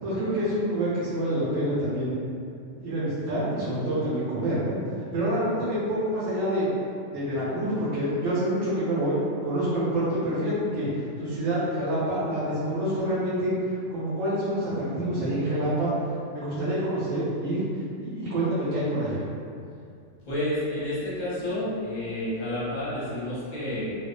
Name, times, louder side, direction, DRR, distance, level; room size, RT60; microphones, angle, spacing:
voice 1, 0.0-2.1 2.8-4.8 5.1-6.7 7.1-15.9 16.3-17.6 18.0-19.2, right 1 dB, 75° right, -11 dB, 1.0 m, -27 dB
voice 2, 20.3-24.0, left 1 dB, 45° left, -10 dB, 0.7 m, -30 dB
2.6 x 2.1 x 2.3 m, 2.4 s
omnidirectional pair, 1.4 m